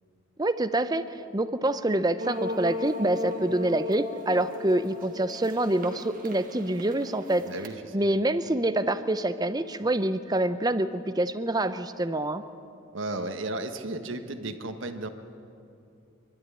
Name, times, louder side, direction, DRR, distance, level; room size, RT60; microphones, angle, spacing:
voice 1, 0.4-7.4 7.9-12.4, right 1 dB, 20° right, 12 dB, 0.7 m, -26 dB
sound 1, 2.2-7.7, left 1 dB, 45° right, 1.8 m, -36 dB
voice 2, 7.5-8.2 12.9-15.1, right 2 dB, 70° right, 7 dB, 1.5 m, -34 dB
25.0 x 12.0 x 9.9 m, 2.7 s
head